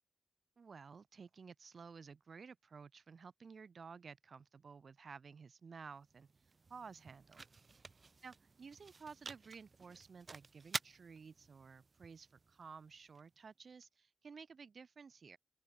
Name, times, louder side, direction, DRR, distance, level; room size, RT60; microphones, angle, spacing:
voice 1, 0.6-6.3 6.7-7.5 8.2-15.4, right 5 dB, 70° right, 6.9 m, -54 dB
sound 1, 5.9-13.8, right 4 dB, 55° right, 0.8 m, -51 dB
open air
wide cardioid pair, 85°, 0 cm